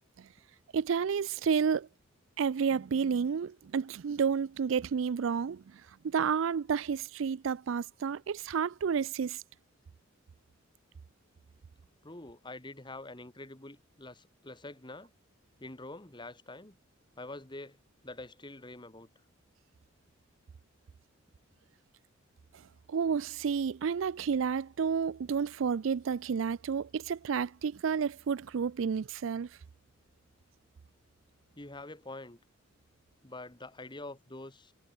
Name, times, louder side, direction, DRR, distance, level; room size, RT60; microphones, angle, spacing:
voice 1, 0.7-1.9 2.4-9.4 22.9-29.5, right 6 dB, 70° right, 0.4 m, -30 dB
voice 2, 12.0-15.1 15.6-16.8 17.2-17.8 18.0-19.1 31.6-32.4 33.2-34.7, left 2 dB, 20° left, 2.0 m, -46 dB
head